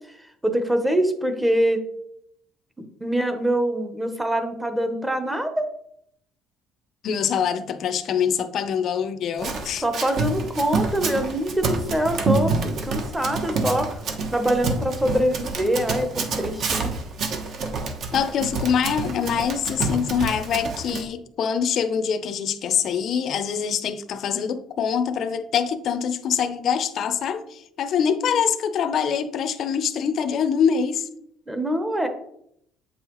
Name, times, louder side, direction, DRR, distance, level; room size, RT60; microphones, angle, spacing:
voice 1, 0.4-1.8 2.8-5.6 9.8-14.0 14.3-16.9 31.5-32.1, right 1 dB, 5° right, 0.8 m, -24 dB
voice 2, 7.0-9.8 18.1-31.1, left 7 dB, 50° left, 0.6 m, -24 dB
Run, 9.4-21.0, right 4 dB, 45° right, 0.9 m, -28 dB
7.9 x 5.5 x 3.0 m
cardioid pair, 150°, 0 cm